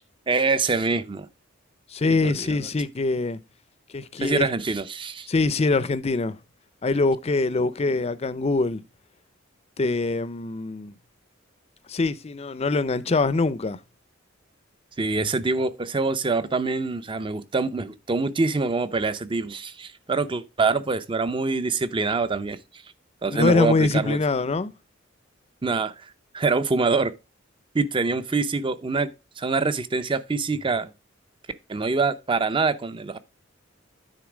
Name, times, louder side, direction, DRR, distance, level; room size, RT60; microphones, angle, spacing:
voice 1, 0.3-1.3 2.1-2.6 4.2-5.3 15.0-22.6 23.2-24.2 25.6-25.9 26.3-27.1 27.7-29.1 29.4-30.9 31.7-33.2, right 4 dB, 25° right, 0.5 m, -25 dB
voice 2, 1.9-3.4 3.9-4.5 5.3-6.4 6.8-8.8 9.8-10.9 11.9-13.8 23.3-24.7, left 3 dB, 30° left, 0.5 m, -23 dB
9.5 x 3.9 x 4.9 m
head